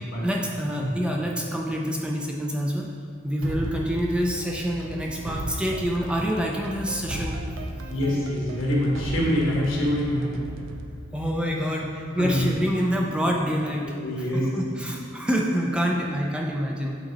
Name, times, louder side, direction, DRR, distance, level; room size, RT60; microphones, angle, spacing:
voice 1, 0.2-2.9 3.2-7.4 11.1-17.0, equal, 5° right, -1 dB, 0.4 m, -27 dB
sound 1, 3.4-12.3, right 1 dB, 85° right, 0.5 m, -36 dB
voice 2, 7.9-10.3 12.2-12.5 13.2-13.3 13.8-14.4, equal, 80° left, -4 dB, 1.5 m, -25 dB
7.9 x 3.9 x 4.1 m, 2.4 s
head